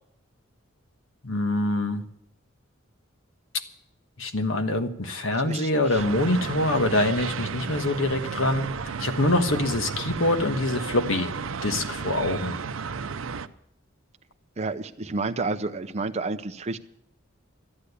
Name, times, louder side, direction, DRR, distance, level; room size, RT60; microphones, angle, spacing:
voice 1, 1.2-2.0 4.2-11.3 11.6-12.6, left 1 dB, 70° left, 8 dB, 1.4 m, -25 dB
voice 2, 5.4-6.0 14.6-16.8, right 3 dB, 35° right, 8 dB, 0.6 m, -30 dB
sound 1, 6.0-13.5, right 5 dB, 80° right, 0.7 m, -33 dB
13.0 x 10.0 x 8.3 m, 0.75 s
head